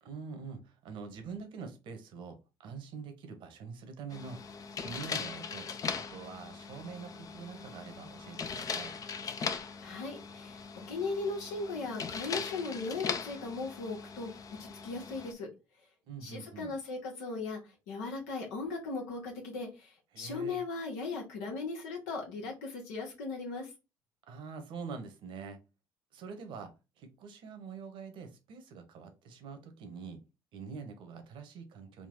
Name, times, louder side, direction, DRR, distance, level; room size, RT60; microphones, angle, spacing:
voice 1, 0.0-4.4 4.8-5.6 5.9-8.9 16.1-16.7 20.1-20.6 24.3-25.6 26.1-30.2 30.5-32.1, right 5 dB, 65° right, 7 dB, 1.1 m, -45 dB
sound 1, 4.1-15.3, left 5 dB, 40° left, 0.6 m, -40 dB
voice 2, 9.8-10.6 10.9-14.3 14.6-15.5 16.2-17.6 17.9-23.7, left 3 dB, 90° left, 0 dB, 1.2 m, -38 dB
3.8 x 2.3 x 3.8 m, 0.27 s
supercardioid pair, 70°, 9 cm